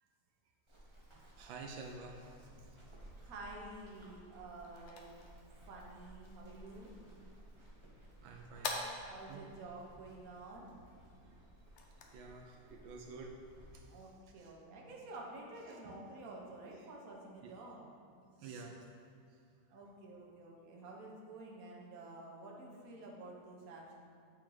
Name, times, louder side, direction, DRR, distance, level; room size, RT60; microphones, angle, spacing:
Run, 0.7-13.7, right 1 dB, 25° right, 0.7 m, -58 dB
voice 1, 1.1-2.5 8.2-8.9 9.3-9.4 11.3-11.5 12.1-14.5 15.7-15.9 17.4-17.5 18.4-18.9 19.3-19.4, right 4 dB, 80° right, 2 dB, 1.4 m, -50 dB
voice 2, 3.2-5.1 5.7-7.0 9.1-10.7 13.9-17.9 19.7-24.0, right 2 dB, 50° right, -2 dB, 1.3 m, -50 dB
sound 1, 4.2-14.0, left 3 dB, 75° left, 0.6 m, -50 dB
9.0 x 4.5 x 3.9 m, 2.4 s
omnidirectional pair, 2.1 m